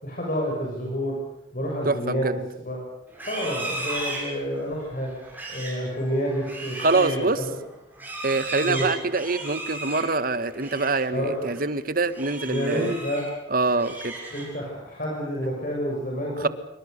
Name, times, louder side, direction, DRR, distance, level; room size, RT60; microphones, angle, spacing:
voice 1, 0.0-1.2 1.5-2.8 3.3-5.1 5.5-7.6 8.6-8.9 11.1-11.6 12.4-13.3 14.3-16.5, equal, 45° left, -2 dB, 6.7 m, -29 dB
voice 2, 1.8-2.3 6.8-7.4 8.2-12.9 13.5-14.1 16.4-16.5, right 3 dB, 50° right, 13 dB, 1.5 m, -25 dB
Livestock farm animals working animals, 3.1-11.0 11.4-11.7 12.1-13.3 13.7-14.7, right 2 dB, 10° right, 7.8 m, -36 dB
27.0 x 25.0 x 6.7 m, 0.85 s
head